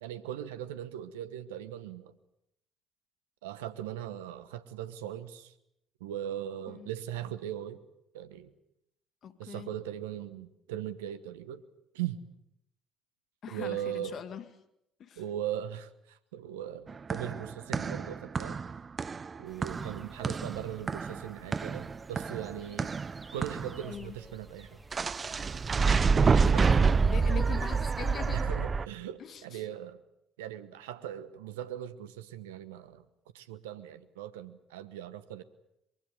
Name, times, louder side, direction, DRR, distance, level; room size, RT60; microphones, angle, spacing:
voice 1, 0.0-2.1 3.4-5.5 6.0-7.8 8.1-8.5 9.4-11.6 11.9-12.2 13.5-14.1 15.2-18.6 19.4-22.9 23.3-24.8 25.3-25.4 26.1-26.7 28.3-30.0 30.4-33.0 33.3-35.4, right 11 dB, 80° right, 12 dB, 1.2 m, -39 dB
voice 2, 9.2-9.8 13.4-14.5 15.0-15.2 23.9-24.2 26.2-28.6 29.2-29.6, left 8 dB, 50° left, 10 dB, 2.0 m, -42 dB
sound 1, 16.9-23.9 24.9-28.9, right 5 dB, 35° right, 0.9 m, -28 dB
sound 2, 19.4-28.4, right 2 dB, 20° right, 2.8 m, -52 dB
23.5 x 23.5 x 8.3 m, 0.79 s
hypercardioid pair, 50°, 0 cm